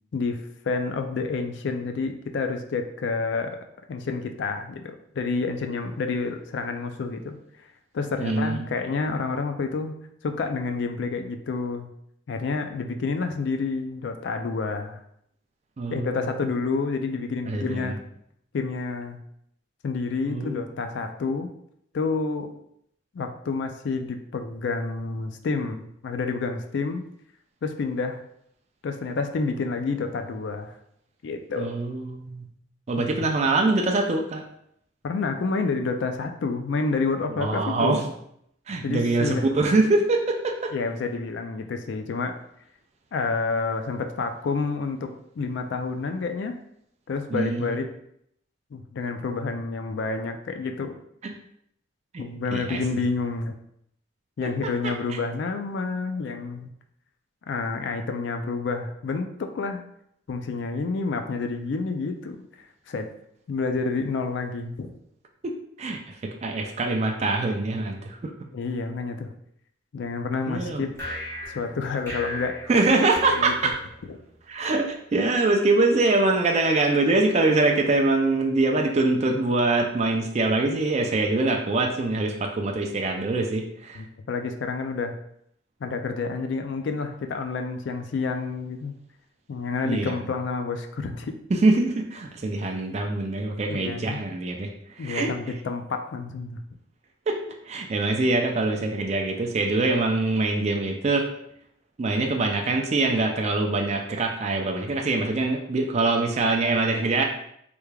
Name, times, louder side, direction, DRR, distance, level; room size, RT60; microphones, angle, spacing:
voice 1, 0.1-3.6 3.9-7.4 7.9-10.0 10.2-11.9 12.3-15.0 15.9-18.0 18.5-19.2 19.8-21.5 21.9-22.5 23.1-27.0 27.6-28.2 28.8-30.7 31.2-31.7 33.0-33.3 35.0-38.0 38.8-39.5 40.7-42.4 43.1-45.1 45.4-46.6 47.1-47.9 48.7-51.0 52.2-53.6 54.4-56.7 57.5-59.8 60.3-62.4 62.9-63.1 63.5-64.9 68.5-69.3 69.9-70.9 71.5-72.6 73.3-73.5 83.9-85.2 85.8-89.0 89.5-91.3 93.7-94.2 95.0-96.6, left 4 dB, 60° left, 6 dB, 0.3 m, -29 dB
voice 2, 8.2-8.7 15.8-16.2 17.5-18.0 20.3-20.6 31.6-32.5 32.9-34.4 37.3-38.1 38.7-40.7 47.3-47.8 51.2-51.3 52.1-52.2 52.5-52.8 54.4-54.5 54.8-55.2 65.4-68.5 70.5-70.9 72.7-73.7 74.5-84.0 89.8-90.2 91.5-94.7 95.0-95.3 97.3-97.4 97.7-101.3 102.0-107.2, right 2 dB, 35° right, 2 dB, 0.3 m, -24 dB
sound 1, 70.9-74.4, left 1 dB, 15° left, 1.0 m, -37 dB
3.4 x 3.2 x 2.2 m, 0.72 s
head